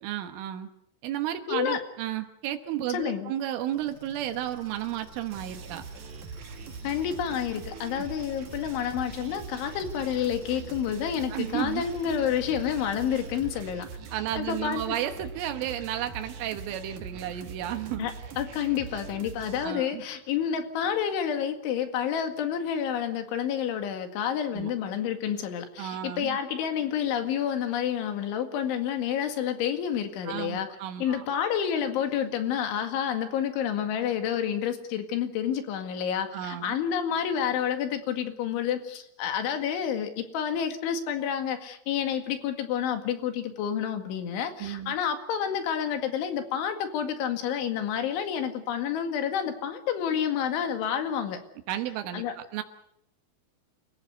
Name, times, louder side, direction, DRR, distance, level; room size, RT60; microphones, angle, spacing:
voice 1, 0.0-0.7 1.0-5.8 7.9-8.1 11.3-11.9 14.1-18.1 19.6-20.0 24.5-24.7 25.8-26.4 30.3-31.3 36.3-36.7 44.6-45.0 51.7-52.6, right 12 dB, 85° right, 7 dB, 3.8 m, -33 dB
voice 2, 1.5-1.8 2.9-3.3 6.8-13.9 14.4-14.8 18.0-30.7 31.0-51.4 52.1-52.3, left 8 dB, 75° left, 7 dB, 4.4 m, -29 dB
sound 1, 3.7-13.9, right 1 dB, 25° left, 6.6 m, -49 dB
sound 2, 5.3-19.7, right 5 dB, 55° right, 2.3 m, -42 dB
28.5 x 15.5 x 8.1 m, 0.77 s
omnidirectional pair, 5.5 m